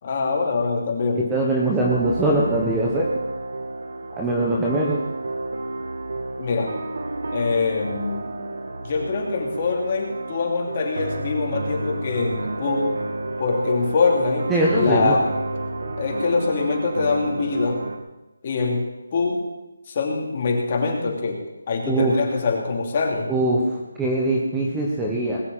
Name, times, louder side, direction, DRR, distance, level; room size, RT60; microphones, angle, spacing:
voice 1, 0.0-1.3 6.4-6.7 7.3-8.3 8.8-12.9 13.4-14.5 14.8-15.3 16.0-17.8 18.4-18.9 19.1-19.4 19.9-23.3, left 4 dB, 25° left, 1 dB, 2.8 m, -24 dB
voice 2, 1.3-3.1 4.2-5.0 14.5-15.2 21.9-22.1 23.3-25.4, right 2 dB, 5° right, -3 dB, 1.2 m, -22 dB
sound 1, 1.8-18.0, right 2 dB, 50° right, 2.2 m, -30 dB
20.5 x 6.9 x 8.9 m, 0.99 s
figure-of-eight pair, 175°, 0 cm